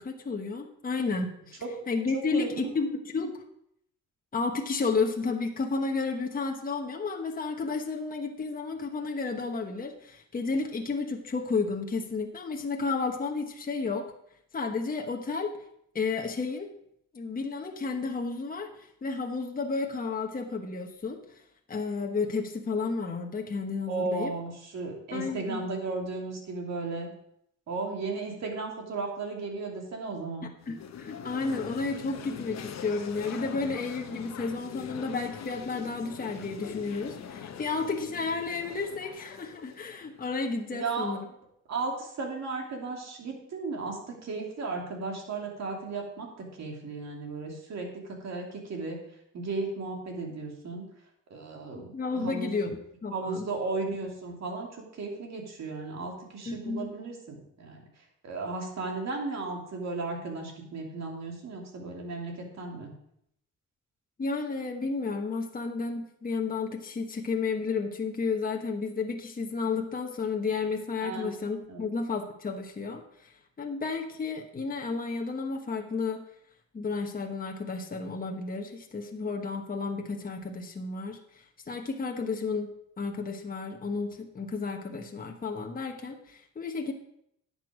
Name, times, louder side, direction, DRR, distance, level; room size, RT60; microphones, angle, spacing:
voice 1, 0.0-3.4 4.3-14.0 14.5-15.5 15.9-16.7 17.1-21.4 21.7-24.3 25.1-25.6 30.7-41.2 51.7-53.4 56.5-56.9 64.2-76.2 76.7-86.9, left 4 dB, 30° left, 3 dB, 1.2 m, -32 dB
voice 2, 2.1-2.7 23.9-27.1 27.7-30.5 40.7-41.3 41.7-49.0 49.3-50.8 51.3-52.5 53.1-62.9 71.0-71.3 71.7-71.9, right 3 dB, 60° right, 0 dB, 2.8 m, -35 dB
sound 1, 30.6-40.6, left 8 dB, 60° left, 1.0 m, -42 dB
10.5 x 6.8 x 4.9 m, 0.74 s
cardioid pair, 90°, 30 cm